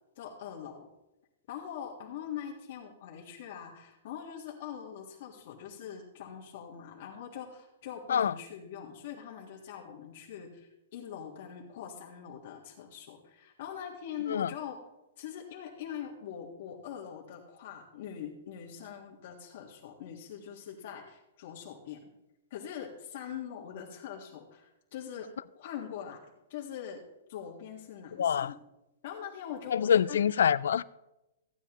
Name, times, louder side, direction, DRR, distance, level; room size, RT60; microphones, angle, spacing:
voice 1, 0.2-0.9 1.5-14.8 15.2-22.1 22.5-25.3 25.5-26.2 26.5-27.0 27.3-28.6 29.0-30.2, left 9 dB, 50° left, 1.5 m, -43 dB
voice 2, 28.2-28.5 29.7-30.8, left 8 dB, 80° left, 0.3 m, -25 dB
15.0 x 9.1 x 3.0 m
hypercardioid pair, 165°, 0 cm